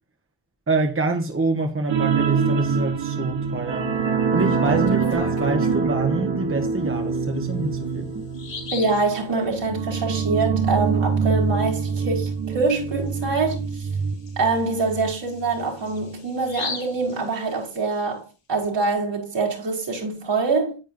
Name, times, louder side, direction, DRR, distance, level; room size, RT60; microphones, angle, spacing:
voice 1, 0.7-3.9 4.3-8.2, right 3 dB, 30° right, 1.4 m, -26 dB
sound 1, 1.9-15.1 15.4-15.6 16.0-16.1, right 5 dB, 90° right, 1.3 m, -25 dB
Bird vocalization bird call bird song, 4.4-5.9 7.4-7.5 7.9-8.0 8.3-9.1 12.5-12.7 13.1-13.2 13.7-17.9, left 4 dB, 90° left, 3.5 m, -36 dB
voice 2, 8.7-13.9 14.4-20.8, right 3 dB, 75° right, 4.4 m, -25 dB
10.0 x 9.1 x 2.7 m
wide cardioid pair, 90°, 43 cm